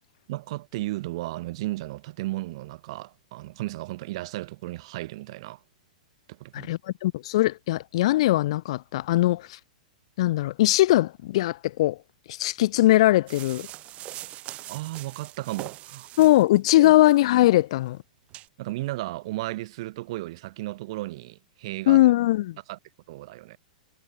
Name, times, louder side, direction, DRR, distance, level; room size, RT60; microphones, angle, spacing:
voice 1, 0.3-5.6 6.3-6.8 14.7-16.1 16.8-16.9 18.6-22.0 22.7-22.8 23.1-23.6, right 18 dB, 45° right, 2.0 m, -34 dB
voice 2, 6.5-9.6 10.2-12.0 12.3-13.7 16.2-18.0 21.9-22.6, left 16 dB, 50° left, 0.6 m, -20 dB
sound 1, 13.3-16.6 17.1-17.2 17.8-17.9 18.3-18.5, right 15 dB, 30° right, 2.0 m, -42 dB
figure-of-eight pair, 105°, 4 cm